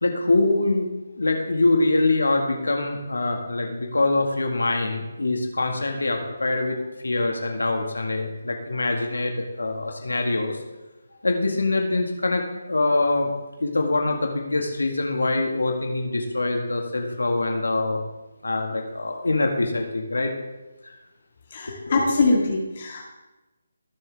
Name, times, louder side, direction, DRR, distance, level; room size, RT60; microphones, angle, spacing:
voice 1, 0.0-0.9 1.2-10.6 11.2-13.3 13.6-18.0 18.4-20.3 20.8-20.9 21.7-21.9, left 2 dB, 80° left, 2 dB, 2.1 m, -24 dB
voice 2, 21.5-23.1, left 3 dB, 45° left, -2 dB, 2.1 m, -23 dB
19.5 x 7.2 x 3.7 m, 1.1 s
figure-of-eight pair, 155°, 0 cm